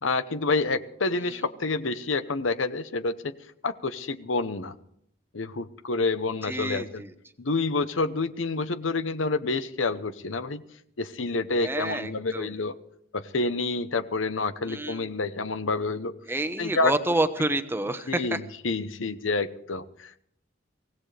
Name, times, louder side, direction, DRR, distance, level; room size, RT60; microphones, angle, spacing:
voice 1, 0.0-3.3 3.6-4.7 5.3-7.0 7.4-10.6 11.0-12.7 13.1-16.1 16.6-16.9 18.1-20.2, left 3 dB, 85° left, 12 dB, 1.0 m, -28 dB
voice 2, 6.4-7.1 11.6-12.6 14.6-15.1 16.3-18.4, right 2 dB, 10° right, 8 dB, 1.1 m, -29 dB
24.0 x 17.0 x 3.4 m, 0.70 s
head